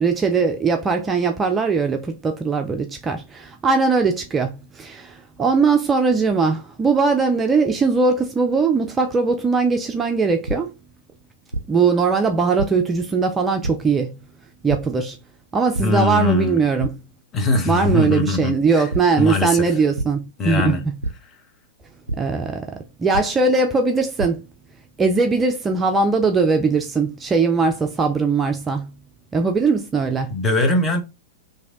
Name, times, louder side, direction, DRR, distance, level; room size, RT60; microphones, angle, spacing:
voice 1, 0.0-10.7 11.7-14.2 14.6-15.2 15.5-16.9 17.7-20.8 22.2-24.4 25.0-28.9 29.3-30.4, right 4 dB, 15° right, 0.4 m, -20 dB
sound 1, 10.4-10.5 11.5-11.6 12.6-12.7 13.6-13.7 14.7-14.8 15.7-15.8 16.3-16.5 16.8-16.9 17.8-17.9 18.9-19.0 20.0-20.1 21.0-21.1 22.1-22.2 23.1-23.2 23.9-24.3, right 2 dB, 85° right, 0.3 m, -25 dB
voice 2, 15.8-16.6 17.3-18.9 19.2-19.7 20.4-20.8 30.3-31.0, left 2 dB, 20° left, 0.8 m, -21 dB
3.2 x 2.6 x 3.6 m
figure-of-eight pair, 100°, 0 cm